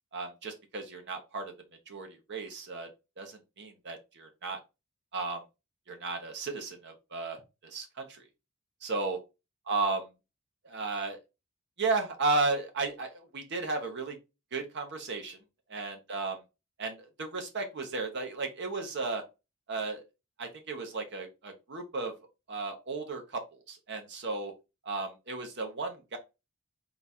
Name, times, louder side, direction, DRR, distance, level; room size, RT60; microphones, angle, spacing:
voice 1, 0.1-1.5 1.9-2.9 3.2-4.6 5.1-5.4 5.9-8.2 8.8-9.2 9.7-10.1 10.6-11.2 11.8-14.2 14.5-15.4 15.7-16.4 16.8-19.2 19.7-20.0 20.4-22.1 22.5-24.5 24.8-26.2, right 3 dB, 55° right, 4 dB, 0.8 m, -34 dB
3.9 x 2.4 x 4.1 m, 0.26 s
head